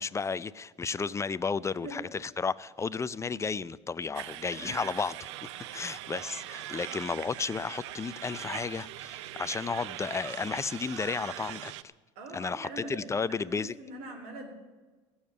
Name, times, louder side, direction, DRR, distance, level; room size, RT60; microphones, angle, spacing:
voice 1, 0.0-5.3 5.7-11.7 12.3-13.7, left 5 dB, 20° left, 18 dB, 0.5 m, -33 dB
sound 1, 4.1-11.8, right 14 dB, 90° right, 0.6 m, -41 dB
voice 2, 12.1-14.5, right 1 dB, 75° right, 4 dB, 3.2 m, -43 dB
16.5 x 7.2 x 9.4 m, 1.3 s
supercardioid pair, 90°, 15 cm